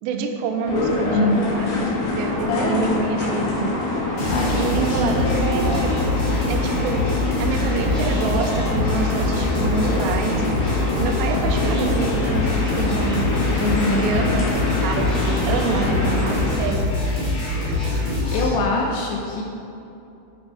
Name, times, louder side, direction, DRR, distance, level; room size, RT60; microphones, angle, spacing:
voice 1, 0.0-3.7 4.6-5.9 6.5-7.0 7.4-10.5 11.0-13.2 13.9-16.8 17.6-17.8, right 4 dB, 90° right, 3 dB, 2.5 m, -27 dB
sound 1, 0.6-16.5, left 2 dB, 65° left, 2.0 m, -25 dB
sound 2, 1.7-12.6, right 1 dB, 65° right, 2.6 m, -39 dB
voice 2, 2.5-2.9 4.3-5.2 13.6-14.1 18.3-19.4, left 3 dB, 80° left, -1 dB, 2.6 m, -23 dB
sound 3, 4.2-18.5, left 2 dB, 45° left, 2.8 m, -24 dB
9.2 x 5.3 x 4.7 m, 2.7 s
omnidirectional pair, 5.8 m